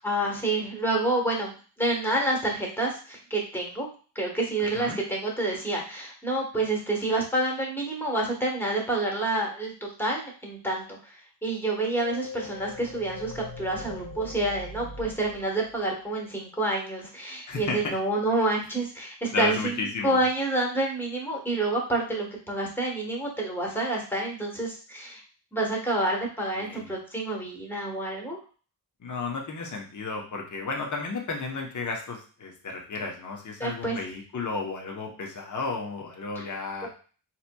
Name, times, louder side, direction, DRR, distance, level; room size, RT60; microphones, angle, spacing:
voice 1, 0.0-1.5 1.8-3.9 4.1-19.7 20.0-25.2 25.5-28.4 33.6-34.0 36.4-36.5 36.8-36.9, right 2 dB, 5° left, -2 dB, 1.2 m, -28 dB
sound 1, 11.6-16.2, left 3 dB, 65° left, 1.4 m, -41 dB
voice 2, 17.5-18.0 19.3-20.2 26.6-26.9 29.0-36.9, left 3 dB, 45° left, 0 dB, 0.9 m, -33 dB
3.9 x 2.9 x 2.2 m, 0.39 s
wide cardioid pair, 90°, 43 cm